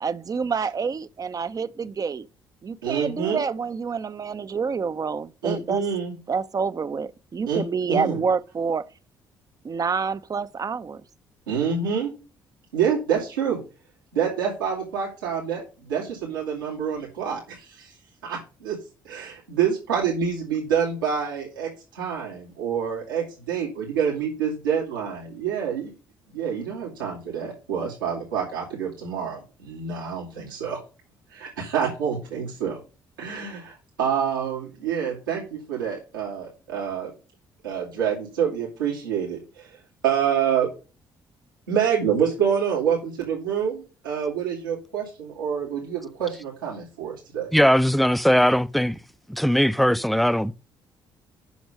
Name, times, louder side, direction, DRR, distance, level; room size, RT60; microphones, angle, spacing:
voice 1, 0.0-2.3 2.6-5.8 6.3-8.9 9.6-11.0, right 5 dB, 35° right, 0.8 m, -27 dB
voice 2, 2.8-3.4 5.4-6.1 7.5-7.6 7.9-8.2 11.5-12.1 12.7-13.6 14.1-17.9 18.2-18.8 19.0-25.9 26.3-30.8 31.3-32.8 33.2-37.1 37.6-39.8 40.0-40.7 41.7-47.5, right 7 dB, 85° right, 2.5 m, -27 dB
voice 3, 47.5-49.0 49.3-50.5, equal, ahead, 0.6 m, -19 dB
8.2 x 6.2 x 6.3 m
figure-of-eight pair, 45°, 11 cm